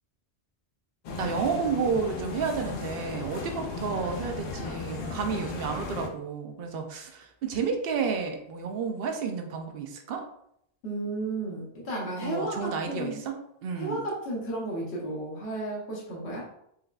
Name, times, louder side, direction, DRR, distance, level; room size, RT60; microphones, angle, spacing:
sound 1, 1.0-6.1, left 3 dB, 60° left, 0.7 m, -36 dB
voice 1, 1.2-10.2 12.2-14.0, right 5 dB, 65° right, 4 dB, 0.7 m, -31 dB
voice 2, 10.8-13.2 13.8-16.4, right 1 dB, 80° left, -4 dB, 1.1 m, -33 dB
4.7 x 2.3 x 2.2 m, 0.75 s
omnidirectional pair, 1.1 m